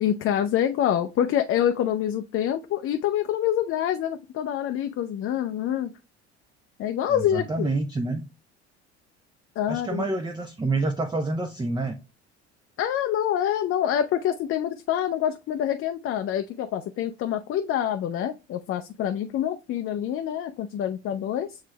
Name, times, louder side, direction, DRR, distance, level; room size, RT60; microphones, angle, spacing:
voice 1, 0.0-5.9 6.8-7.7 9.6-10.0 12.8-21.6, left 10 dB, 40° left, 0.5 m, -26 dB
voice 2, 7.1-8.2 9.7-12.0, right 2 dB, 15° right, 0.6 m, -28 dB
7.4 x 3.2 x 2.2 m
hypercardioid pair, 60°, 34 cm